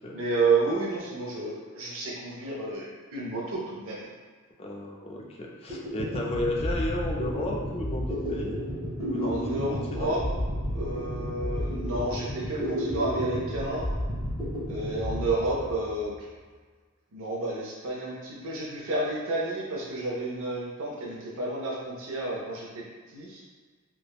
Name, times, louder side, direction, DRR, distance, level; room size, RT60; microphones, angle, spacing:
voice 1, 0.1-4.1 9.2-10.2 10.7-13.9 14.7-16.3 17.1-22.8 23.1-23.4, right 2 dB, 65° right, -4 dB, 0.6 m, -30 dB
voice 2, 4.6-8.5 9.0-10.2 11.7-12.1, left 1 dB, 25° left, -1 dB, 0.3 m, -34 dB
sound 1, 5.7-16.2, equal, 15° right, 0.9 m, -32 dB
3.3 x 2.0 x 2.3 m, 1.5 s
head